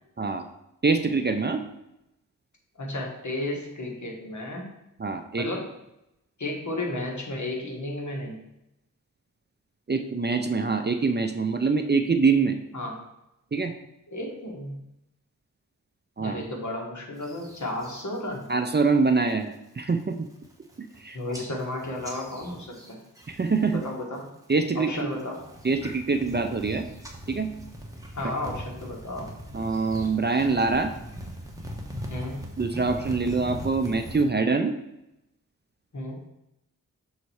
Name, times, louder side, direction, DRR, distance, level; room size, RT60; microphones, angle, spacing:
voice 1, 0.8-1.6 5.0-5.5 9.9-12.6 13.5-13.7 16.2-16.4 18.5-20.3 21.0-21.2 23.3-23.8 24.5-25.1 25.6-26.9 27.3-27.5 29.5-30.9 32.6-34.7, right 4 dB, 30° right, 7 dB, 0.5 m, -24 dB
voice 2, 2.8-4.6 5.3-5.7 6.4-8.4 12.7-13.0 14.1-14.7 16.2-18.5 21.1-23.0 23.7-24.3 24.7-25.4 28.1-29.3 32.1-32.5 35.9-36.2, left 1 dB, 60° left, -1 dB, 1.7 m, -33 dB
sound 1, 17.2-18.0 18.4-18.8 19.2-19.5 20.0-20.1 20.3-21.0 21.3-23.9 24.1-24.7 25.2-34.2, equal, 10° right, 1.2 m, -40 dB
6.5 x 4.0 x 4.7 m, 0.86 s
wide cardioid pair, 70°, 33 cm